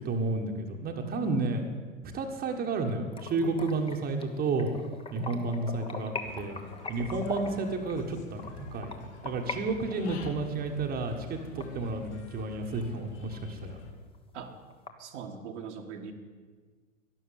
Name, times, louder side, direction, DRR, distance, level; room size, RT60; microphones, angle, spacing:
voice 1, 0.0-1.6 2.1-4.7 5.1-6.6 6.9-8.9 9.2-13.8, right 3 dB, 25° right, 3 dB, 1.5 m, -31 dB
sound 1, 3.1-9.6 9.9-12.4 12.8-12.9 13.3-13.4 13.8-13.9 14.1-14.9, left 4 dB, 15° left, 1.2 m, -41 dB
Human voice / Bird, 6.2-13.9, left 5 dB, 60° left, 2.8 m, -47 dB
voice 2, 15.0-16.1, right 6 dB, 55° right, 3 dB, 1.7 m, -41 dB
12.0 x 11.5 x 8.3 m, 1.5 s
figure-of-eight pair, 95°, 40 cm